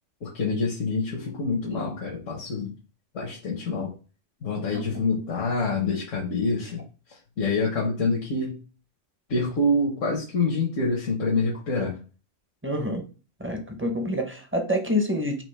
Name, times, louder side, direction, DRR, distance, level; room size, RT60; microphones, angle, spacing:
voice 1, 0.2-2.7 3.1-3.9 4.4-6.8 7.4-8.6 9.3-12.0, left 3 dB, 80° left, -2 dB, 1.3 m, -26 dB
voice 2, 12.6-13.0 13.4-15.4, left 1 dB, 15° right, 4 dB, 0.5 m, -27 dB
5.0 x 2.9 x 3.3 m, 0.35 s
omnidirectional pair, 1.3 m